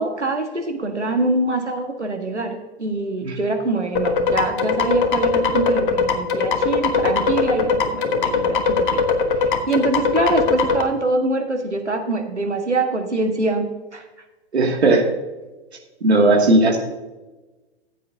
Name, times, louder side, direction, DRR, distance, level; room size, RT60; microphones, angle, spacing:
voice 1, 0.0-9.0 9.7-13.7 13.9-14.0, right 2 dB, 90° right, 3 dB, 1.7 m, -24 dB
sound 1, 4.0-10.8, left 5 dB, 50° left, 1.3 m, -20 dB
voice 2, 14.5-15.1 16.0-16.8, right 2 dB, 70° right, 1 dB, 2.4 m, -16 dB
15.0 x 8.4 x 2.8 m, 1.1 s
figure-of-eight pair, 110°, 34 cm